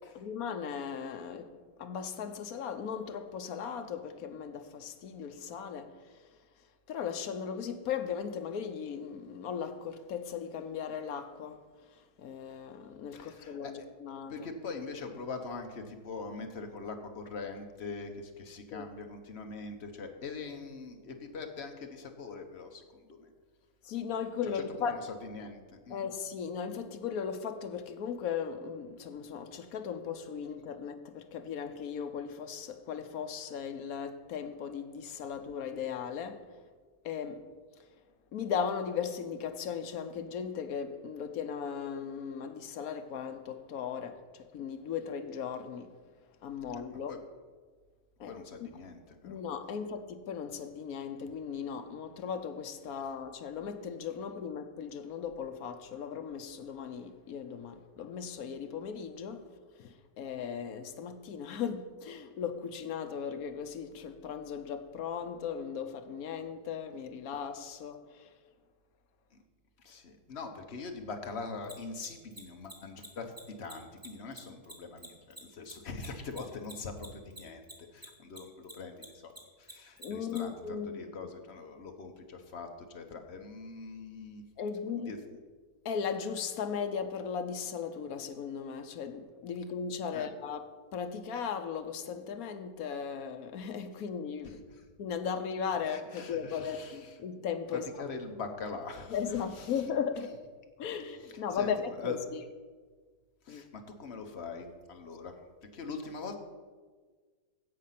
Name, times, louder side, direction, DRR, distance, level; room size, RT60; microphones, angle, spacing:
voice 1, 0.1-6.1 6.9-11.7 11.9-14.4 18.7-18.9 23.8-25.0 25.9-36.5 37.0-37.5 38.3-46.0 46.4-47.1 48.2-48.7 49.2-68.3 80.0-81.0 84.6-85.2 85.8-94.6 95.0-97.9 99.1-100.4 100.8-102.4 103.5-103.6, left 7 dB, 70° left, 1.2 m, -37 dB
voice 2, 13.1-13.9 14.3-23.3 24.4-26.0 46.7-46.8 47.1-47.2 48.3-49.4 69.8-77.7 77.9-79.3 79.6-84.4 85.1-85.2 90.1-90.3 95.9-97.1 98.0-99.2 99.6-99.7 101.5-101.7 102.0-102.2 103.4-105.3 105.7-106.4, left 4 dB, 45° left, 1.3 m, -42 dB
Mechanisms, 71.6-78.4 78.6-80.4, right 1 dB, 15° right, 1.3 m, -47 dB
16.0 x 5.4 x 5.8 m
omnidirectional pair, 1.7 m